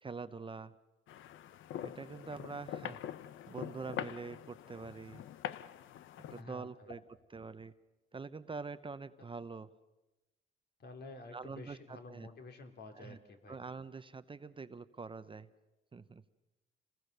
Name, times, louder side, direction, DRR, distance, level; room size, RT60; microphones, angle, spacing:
voice 1, 0.0-0.7 1.8-3.0 3.5-5.2 6.3-7.0 7.3-7.7 8.1-9.7 11.3-12.3 12.9-13.2 13.5-15.5 15.9-16.2, right 4 dB, 25° right, 12 dB, 0.8 m, -45 dB
sound 1, 1.1-6.4, left 11 dB, 80° left, 0.8 m, -44 dB
voice 2, 6.3-6.9 9.2-9.3 10.8-13.6, left 3 dB, 55° left, 5 dB, 3.1 m, -50 dB
28.0 x 20.0 x 6.7 m, 1.0 s
cardioid pair, 90°, 20 cm